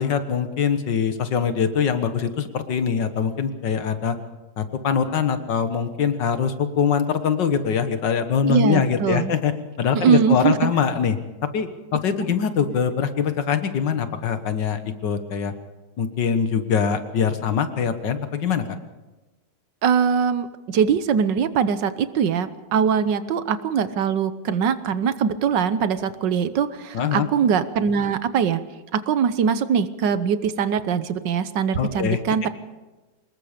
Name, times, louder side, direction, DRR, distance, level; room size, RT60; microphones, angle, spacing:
voice 1, 0.0-4.2 4.6-9.5 9.8-11.2 11.5-15.5 16.0-18.6 26.9-27.3 31.8-32.2, left 7 dB, 80° left, 10 dB, 2.0 m, -23 dB
voice 2, 8.5-9.3 9.9-10.7 19.8-28.6 28.9-32.5, right 7 dB, 80° right, 13 dB, 1.6 m, -22 dB
24.5 x 20.5 x 5.1 m, 1.2 s
omnidirectional pair, 1.9 m